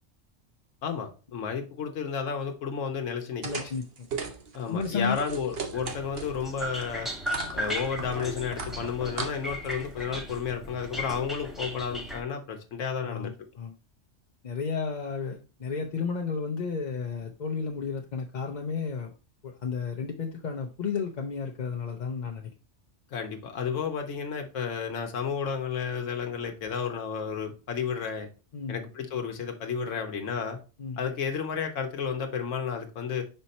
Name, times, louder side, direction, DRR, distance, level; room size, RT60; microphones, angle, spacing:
voice 1, 0.8-3.5 4.5-7.1 7.5-13.3 23.1-28.3 28.7-30.6 31.0-33.2, left 6 dB, 85° left, 4 dB, 1.2 m, -32 dB
voice 2, 3.4-3.8 4.7-5.2 13.0-13.7 14.4-19.1 19.4-22.5 28.5-28.8 30.8-31.0, left 5 dB, 45° left, 2 dB, 0.7 m, -32 dB
sound 1, 3.4-6.4 6.8-10.0, right 4 dB, 55° right, 1.2 m, -38 dB
sound 2, 5.7-12.2, equal, ahead, 0.9 m, -36 dB
5.4 x 4.5 x 4.1 m, 0.33 s
omnidirectional pair, 1.3 m